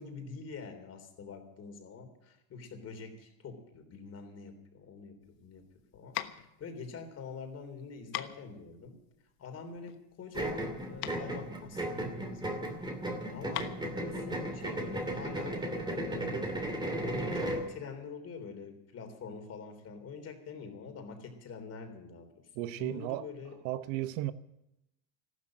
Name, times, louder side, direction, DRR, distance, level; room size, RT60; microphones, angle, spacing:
voice 1, 0.0-5.6 5.9-9.0 9.4-12.7 13.3-16.4 16.8-22.3 22.7-23.5, left 5 dB, 35° left, 3.6 m, -45 dB
sound 1, 5.2-15.1, left 15 dB, 65° left, 1.3 m, -44 dB
sound 2, 10.3-17.7, right 1 dB, 10° right, 2.5 m, -35 dB
voice 2, 22.6-23.3 23.6-24.3, right 15 dB, 65° right, 0.9 m, -34 dB
14.5 x 12.5 x 7.7 m
supercardioid pair, 130°, 45 cm